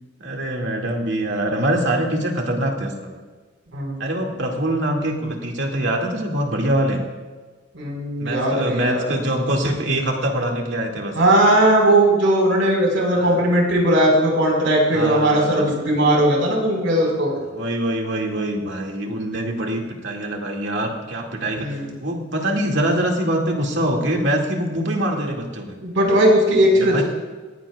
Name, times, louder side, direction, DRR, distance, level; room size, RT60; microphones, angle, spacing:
voice 1, 0.2-3.2 4.0-7.0 8.2-11.1 13.1-13.4 14.9-15.7 17.0-17.1 17.5-25.8 26.8-27.0, right 1 dB, 65° right, 0 dB, 2.3 m, -24 dB
voice 2, 7.7-9.1 11.1-17.3 21.6-21.9 25.8-27.0, right 1 dB, 85° right, -1 dB, 4.8 m, -18 dB
18.5 x 16.0 x 2.4 m, 1.4 s
head